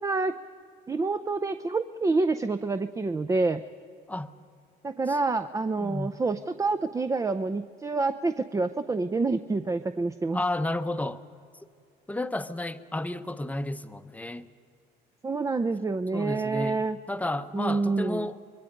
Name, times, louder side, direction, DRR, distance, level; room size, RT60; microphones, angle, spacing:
voice 1, 0.0-0.3 0.9-3.6 4.8-10.4 15.2-17.0 17.5-18.3, right 3 dB, 20° right, 0.6 m, -27 dB
voice 2, 5.8-6.1 10.3-11.2 12.1-14.5 16.1-18.4, left 1 dB, 10° left, 0.8 m, -32 dB
25.5 x 22.0 x 5.2 m
cardioid pair, 110°, 17 cm